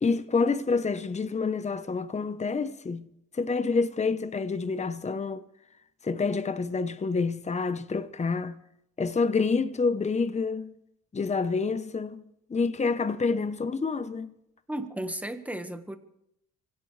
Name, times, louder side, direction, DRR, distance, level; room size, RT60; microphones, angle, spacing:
voice 1, 0.0-3.1 3.3-5.4 6.0-8.6 9.0-10.7 11.1-12.2 12.5-14.3, left 4 dB, 25° left, 0.9 m, -28 dB
voice 2, 14.7-16.0, right 1 dB, 5° right, 1.5 m, -34 dB
25.0 x 17.0 x 3.3 m
cardioid pair, 90°, 30 cm